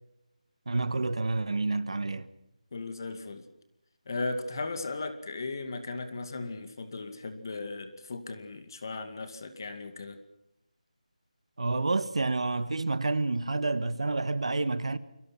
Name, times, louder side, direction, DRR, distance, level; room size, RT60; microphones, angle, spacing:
voice 1, 0.7-2.3 11.6-15.0, right 3 dB, 45° right, 1.5 m, -29 dB
voice 2, 2.7-3.5 4.1-10.2, left 3 dB, 30° left, 2.2 m, -37 dB
29.5 x 23.5 x 5.9 m
figure-of-eight pair, 175°, 4 cm